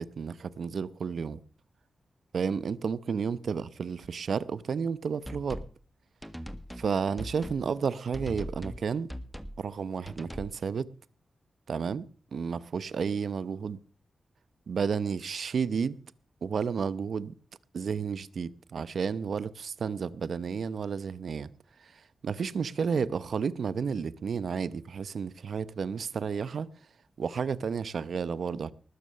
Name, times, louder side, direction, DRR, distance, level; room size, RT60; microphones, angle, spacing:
voice 1, 0.0-1.4 2.3-5.6 6.7-9.1 9.6-10.9 11.7-12.0 12.3-13.8 14.7-16.0 16.4-17.3 17.7-21.5 21.8-26.7 27.2-28.7, right 6 dB, 75° right, 0.8 m, -32 dB
sound 1, 5.2-5.7 6.2-6.9 7.2-7.6 8.1-8.8 9.1-9.6 10.0-10.6, equal, ahead, 1.7 m, -40 dB
19.5 x 7.4 x 6.7 m
cardioid pair, 65°, 0 cm